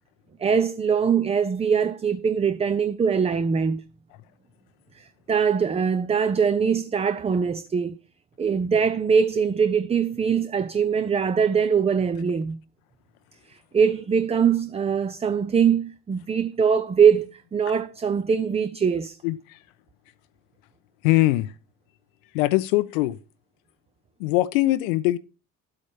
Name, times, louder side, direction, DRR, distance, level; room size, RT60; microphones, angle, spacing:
voice 1, 0.4-3.8 5.0-8.0 8.4-12.6 13.5-19.2, right 6 dB, 15° right, 0.5 m, -22 dB
voice 2, 19.2-19.6 21.0-21.5 22.3-23.2 24.2-25.2, left 17 dB, 65° left, 0.6 m, -22 dB
12.0 x 8.5 x 4.4 m
figure-of-eight pair, 50°, 45 cm